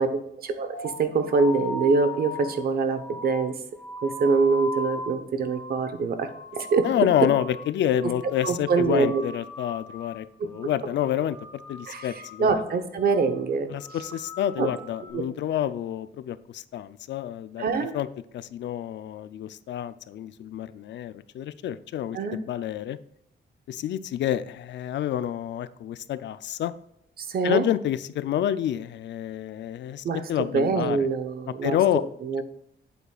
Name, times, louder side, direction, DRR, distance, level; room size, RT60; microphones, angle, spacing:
voice 1, 0.0-3.6 4.0-6.9 8.0-8.1 8.4-9.2 11.9-13.7 14.6-14.7 17.6-17.9 22.1-22.4 27.2-27.6 30.0-32.4, right 4 dB, 50° right, 9 dB, 0.9 m, -25 dB
sound 1, 0.7-7.7 8.0-8.5 8.7-10.2 10.5-10.9 11.2-12.7 13.0-13.4 13.7-15.1, left 2 dB, 25° left, 1.4 m, -39 dB
voice 2, 6.8-12.5 13.7-17.7 17.9-18.1 18.3-23.0 23.7-26.7 27.4-31.0 31.6-32.0, left 11 dB, 70° left, 15 dB, 0.5 m, -28 dB
8.6 x 8.0 x 2.4 m, 0.78 s
wide cardioid pair, 160°, 19 cm